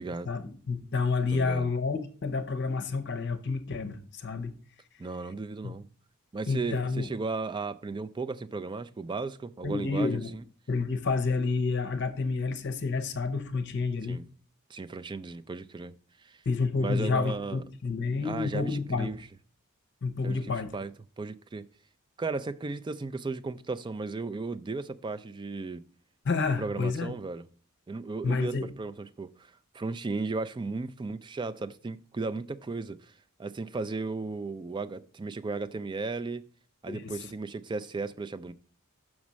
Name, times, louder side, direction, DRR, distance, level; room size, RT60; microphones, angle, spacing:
voice 1, 0.2-4.5 5.6-5.7 6.5-7.1 9.6-10.3 10.7-14.2 16.5-19.1 20.0-20.7 26.2-27.1 28.2-28.7 36.9-37.1, left 4 dB, 55° left, 0.8 m, -29 dB
voice 2, 1.3-1.7 5.0-5.9 6.3-10.2 14.1-14.2 14.7-15.9 16.2-16.4 16.8-17.6 18.2-19.2 20.2-20.9 21.2-21.6 22.2-25.8 26.6-27.4 27.9-33.1 33.4-36.4 36.8-38.5, right 3 dB, 20° right, 0.3 m, -35 dB
6.2 x 4.2 x 6.2 m
head